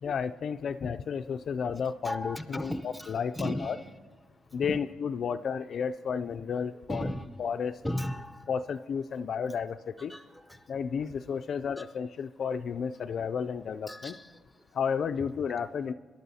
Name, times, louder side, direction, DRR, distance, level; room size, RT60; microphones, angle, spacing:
voice 1, 0.0-3.8 4.5-7.1 7.4-7.7 8.5-10.1 10.7-14.2 14.7-15.9, left 6 dB, 55° left, 9 dB, 0.3 m, -32 dB
voice 2, 2.0-3.8 4.6-4.8 5.2-5.3 6.9-8.5 10.0-10.6 11.8-11.9 13.9-14.4, left 1 dB, 5° left, 8 dB, 0.7 m, -36 dB
22.0 x 11.5 x 2.8 m, 1.5 s
cardioid pair, 110°, 0 cm